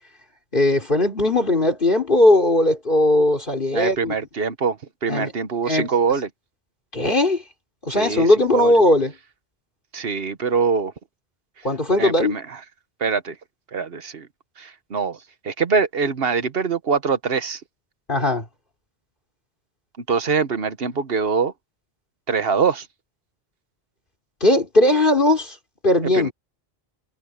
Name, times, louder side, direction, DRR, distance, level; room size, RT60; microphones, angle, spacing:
voice 1, 0.5-4.1 5.1-5.3 5.6-5.9 6.9-7.4 7.8-9.1 11.6-12.4 18.1-18.4 24.4-25.6 25.8-26.3, left 1 dB, 55° left, 4.0 m, -18 dB
voice 2, 3.7-6.3 8.0-8.3 8.5-8.7 9.9-10.9 12.0-12.6 13.0-13.3 13.7-14.3 14.6-15.2 15.4-17.6 20.1-21.5 22.3-22.9 26.1-26.3, right 5 dB, 70° right, 1.3 m, -23 dB
omnidirectional pair, 1.0 m